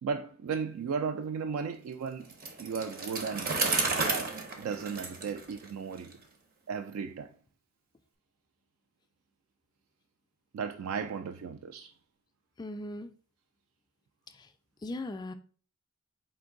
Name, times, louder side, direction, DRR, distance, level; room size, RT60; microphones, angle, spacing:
voice 1, 0.0-2.3 2.6-6.2 6.7-7.3 10.5-11.9, right 6 dB, 75° right, 0.3 m, -35 dB
Bicycle, 2.3-6.1, right 3 dB, 45° right, 0.7 m, -32 dB
voice 2, 12.6-13.1 14.3-14.5 14.8-15.3, left 1 dB, 20° left, 0.3 m, -38 dB
4.4 x 2.6 x 3.7 m
head